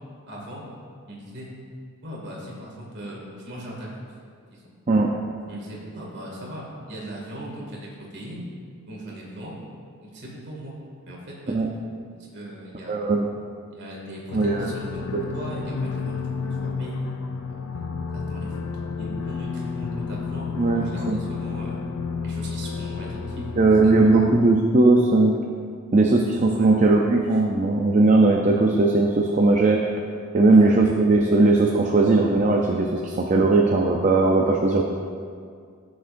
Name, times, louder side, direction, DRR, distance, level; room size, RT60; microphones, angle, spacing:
voice 1, 0.3-0.6 1.1-1.5 2.0-4.1 4.5-4.6 5.5-8.5 8.9-9.5 10.0-10.8 11.1-11.9 12.3-13.1 13.7-15.0 15.3-16.2 16.6-17.0 18.1-21.8 22.2-23.6 23.8-23.9 26.6-26.7 30.5-30.6, right 1 dB, 50° right, -3 dB, 2.1 m, -39 dB
voice 2, 12.9-13.3 14.3-15.2 20.6-21.2 23.6-25.4 25.9-29.8 30.3-34.8, right 2 dB, 35° right, 0 dB, 0.5 m, -19 dB
sound 1, 14.3-24.4, left 5 dB, 90° left, 0.6 m, -31 dB
14.5 x 6.4 x 2.6 m, 2.2 s
head